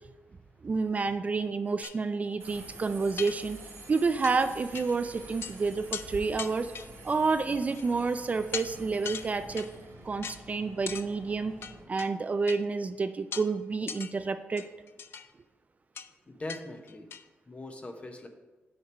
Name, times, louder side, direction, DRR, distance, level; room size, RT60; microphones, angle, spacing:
voice 1, 0.6-3.6 3.9-6.7 7.0-9.7 10.0-11.5 11.9-14.7, right 4 dB, 35° right, 10 dB, 0.3 m, -29 dB
sound 1, 1.8-2.0 2.6-2.7 3.2-3.8 4.2-4.4 4.7-4.9 5.2-5.5 5.9-6.1 6.4-7.1 7.7-8.0 8.5-8.7 9.0-9.8 10.2-10.4 10.9-11.1 11.6-12.1 12.5-12.6 13.3-13.5 13.9-14.1 14.6-15.3 16.0-16.1 16.5-16.6 16.9-17.3, left 7 dB, 65° left, 0.4 m, -39 dB
Subway metro underground, 2.4-11.8, right 2 dB, 90° right, 2.1 m, -47 dB
voice 2, 16.3-17.1 17.5-18.3, left 2 dB, 30° left, 5 dB, 0.9 m, -41 dB
6.5 x 4.5 x 6.1 m, 1.1 s
wide cardioid pair, 110°, 4 cm